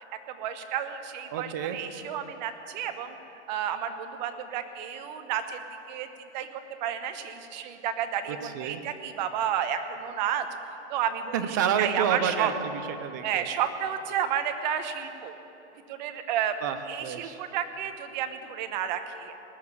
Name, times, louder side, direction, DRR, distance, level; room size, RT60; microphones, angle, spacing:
voice 1, 0.4-3.2 3.5-5.6 5.9-6.1 6.3-6.5 6.8-10.4 10.9-11.3 11.8-12.5 13.2-15.3 15.9-16.5 16.9-19.4, right 9 dB, 35° right, 8 dB, 1.1 m, -31 dB
voice 2, 1.3-1.8 8.3-8.8 11.3-13.5 16.6-17.4, right 8 dB, 15° right, 9 dB, 0.3 m, -29 dB
19.5 x 6.7 x 9.8 m, 3.0 s
hypercardioid pair, 155°, 36 cm